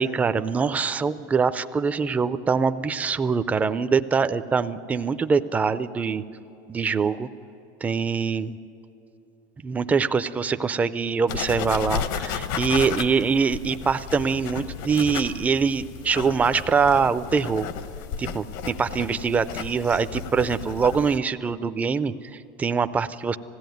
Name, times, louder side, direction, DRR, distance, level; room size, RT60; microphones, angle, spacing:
voice 1, 0.0-6.2 6.7-7.3 7.8-8.6 9.6-17.7 18.2-23.4, right 5 dB, 15° right, 11 dB, 0.4 m, -24 dB
sound 1, 11.3-21.2, left 8 dB, 70° left, 1.0 m, -33 dB
20.5 x 16.0 x 9.2 m, 2.9 s
cardioid pair, 155°, 11 cm